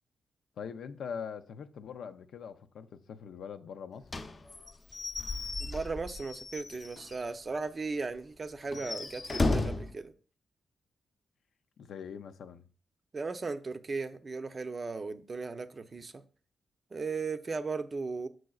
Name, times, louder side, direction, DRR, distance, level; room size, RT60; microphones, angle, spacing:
voice 1, 0.6-4.1 11.8-12.6, left 7 dB, 85° left, 0.5 m, -42 dB
Slam / Squeak / Wood, 4.1-7.3 7.6-7.7 8.0-8.1 8.6-9.9, left 2 dB, 40° left, 0.7 m, -34 dB
voice 2, 5.6-10.1 13.1-16.2 16.9-18.3, right 4 dB, 40° right, 0.6 m, -36 dB
7.6 x 6.2 x 2.4 m
cardioid pair, 90°, 0 cm